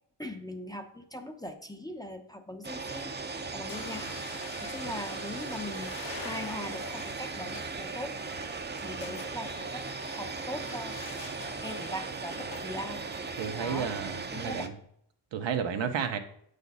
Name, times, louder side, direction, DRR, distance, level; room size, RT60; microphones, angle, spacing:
voice 1, 0.2-4.1 4.6-8.1 8.8-11.0 11.6-13.0 13.6-13.9 14.3-14.7, left 1 dB, 10° left, 5 dB, 0.8 m, -40 dB
sound 1, 2.6-14.7, right 4 dB, 20° right, 0.7 m, -38 dB
sound 2, 3.7-12.7, left 4 dB, 65° left, 1.5 m, -47 dB
voice 2, 13.4-14.7 15.3-16.2, right 7 dB, 70° right, 6 dB, 1.1 m, -32 dB
8.4 x 6.7 x 4.1 m, 0.68 s
cardioid pair, 110°, 46 cm